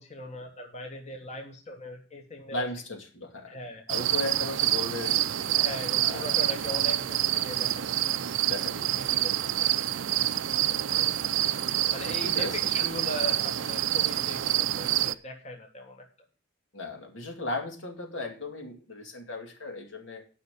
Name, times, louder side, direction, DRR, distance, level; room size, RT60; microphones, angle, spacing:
voice 1, 0.0-2.6 3.5-3.8 5.6-8.4 8.7-9.7 10.8-11.1 11.9-16.1, left 1 dB, 35° left, 2 dB, 1.5 m, -40 dB
voice 2, 2.5-3.6 3.9-5.6 6.0-6.4 8.4-9.5 10.7-11.1 12.2-12.6 16.7-20.2, left 2 dB, 75° left, 2 dB, 2.5 m, -37 dB
sound 1, 3.9-15.1, right 13 dB, 75° right, 0.5 m, -27 dB
9.4 x 5.8 x 8.2 m, 0.37 s
head